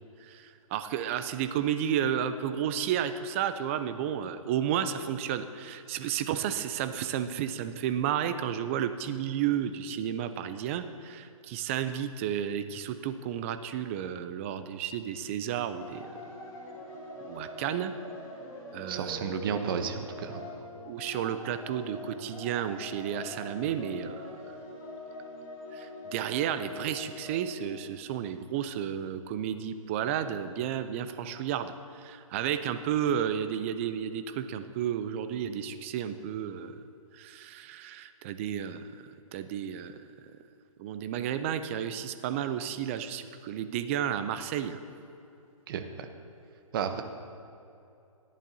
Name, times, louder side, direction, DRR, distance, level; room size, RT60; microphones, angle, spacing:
voice 1, 0.2-16.1 17.3-17.9 18.7-19.5 19.7-19.9 20.9-24.6 25.7-36.8 37.1-40.0 40.8-44.8, right 9 dB, 25° right, 10 dB, 0.4 m, -32 dB
sound 1, 15.8-28.5, left 1 dB, 30° left, 2.8 m, -44 dB
voice 2, 18.9-20.4 45.7-46.1 46.7-47.0, right 7 dB, 40° right, 7 dB, 0.8 m, -32 dB
14.5 x 10.5 x 2.7 m, 2.7 s
hypercardioid pair, 145°, 18 cm